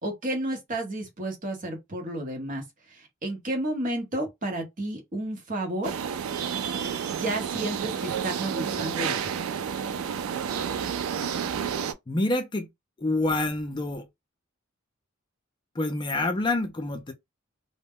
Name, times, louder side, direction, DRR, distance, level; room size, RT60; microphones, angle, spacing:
voice 1, 0.0-2.6 2.9-6.0 7.1-9.3, right 1 dB, 40° right, 0.9 m, -32 dB
sound 1, 5.8-11.9, right 7 dB, 85° right, 0.4 m, -30 dB
voice 2, 12.1-12.7 13.0-14.1 15.8-17.1, left 2 dB, 20° left, 0.4 m, -27 dB
2.1 x 2.1 x 3.5 m
head